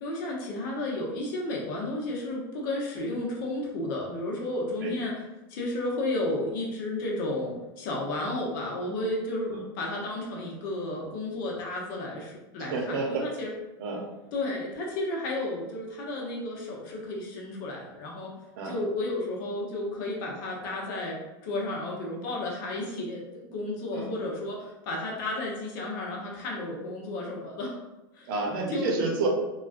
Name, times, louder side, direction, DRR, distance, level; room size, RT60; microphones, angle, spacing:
voice 1, 0.0-5.1 5.5-13.5 14.3-18.3 18.6-27.8 28.1-28.3 28.7-28.9, left 2 dB, 65° left, -2 dB, 0.8 m, -32 dB
voice 2, 12.6-13.3 13.8-14.0 18.6-18.7 23.9-24.1 28.3-29.3, right 3 dB, 75° right, 0 dB, 0.7 m, -30 dB
2.3 x 2.2 x 2.5 m, 1.0 s
supercardioid pair, 120°, 11 cm